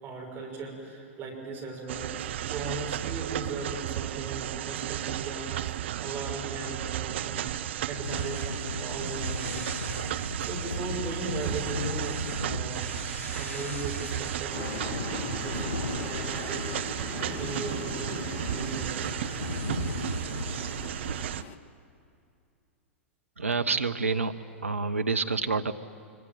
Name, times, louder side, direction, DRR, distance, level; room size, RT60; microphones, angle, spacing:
voice 1, 0.0-7.6 7.8-9.6 9.9-12.9 13.4-14.9 15.2-16.9 17.1-19.1, right 3 dB, 30° right, 0 dB, 6.6 m, -38 dB
sound 1, 1.9-21.4, right 12 dB, 60° right, 0.6 m, -34 dB
sound 2, 8.0-21.4, left 3 dB, 90° left, 0.6 m, -38 dB
sound 3, 14.5-21.6, left 4 dB, 35° left, 2.0 m, -39 dB
voice 2, 23.4-25.7, right 4 dB, 80° right, 8 dB, 0.8 m, -28 dB
25.0 x 24.5 x 9.2 m, 2.5 s
figure-of-eight pair, 100°, 7 cm